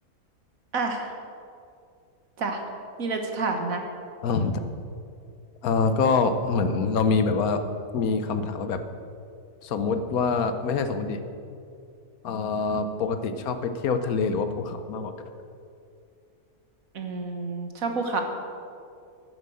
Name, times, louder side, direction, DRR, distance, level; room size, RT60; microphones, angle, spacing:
voice 1, 0.7-1.1 2.4-2.6 3.0-3.8 16.9-18.2, right 3 dB, 65° right, 4 dB, 1.7 m, -29 dB
voice 2, 4.2-4.6 5.6-7.6 7.9-8.8 9.6-11.2 12.2-15.1, left 4 dB, 75° left, 9 dB, 1.3 m, -25 dB
12.0 x 7.3 x 7.8 m, 2.5 s
omnidirectional pair, 1.6 m